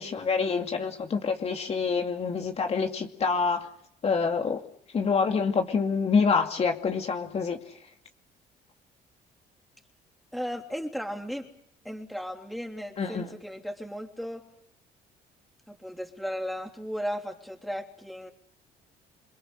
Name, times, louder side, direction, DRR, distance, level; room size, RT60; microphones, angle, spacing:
voice 1, 0.0-3.7 4.0-4.6 4.9-7.6 13.0-13.3, left 5 dB, 40° left, 4 dB, 2.4 m, -26 dB
voice 2, 10.3-11.5 11.8-14.4 15.7-18.3, equal, ahead, 4 dB, 3.2 m, -35 dB
28.0 x 23.0 x 6.6 m, 0.69 s
cardioid pair, 110°, 17 cm